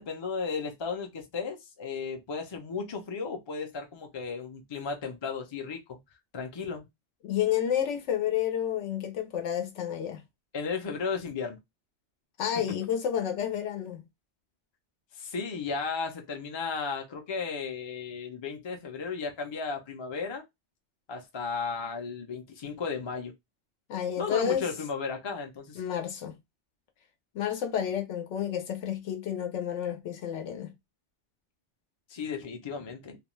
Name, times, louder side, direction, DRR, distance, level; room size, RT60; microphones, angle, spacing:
voice 1, 0.0-6.0 6.3-6.8 10.5-11.6 15.1-20.4 21.1-23.3 24.2-25.8 32.1-33.2, left 5 dB, 40° left, 0.4 m, -34 dB
voice 2, 7.2-10.2 12.4-14.0 23.9-24.6 25.8-26.4 27.3-30.7, left 9 dB, 90° left, 1.0 m, -30 dB
2.4 x 2.2 x 3.0 m
omnidirectional pair, 1.2 m